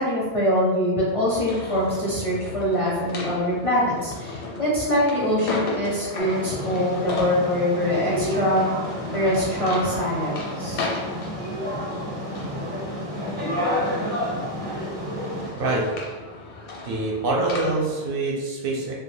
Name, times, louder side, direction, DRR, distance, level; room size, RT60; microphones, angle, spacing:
voice 1, 0.0-8.7 9.1-10.9, equal, 45° left, -7 dB, 0.5 m, -24 dB
sound 1, 1.2-18.1, left 2 dB, 85° left, 0.9 m, -36 dB
sound 2, 6.2-15.5, equal, 35° right, 0.8 m, -30 dB
voice 2, 16.8-18.9, right 2 dB, 65° right, -2 dB, 0.7 m, -25 dB
2.2 x 2.1 x 3.1 m, 1.3 s
omnidirectional pair, 1.1 m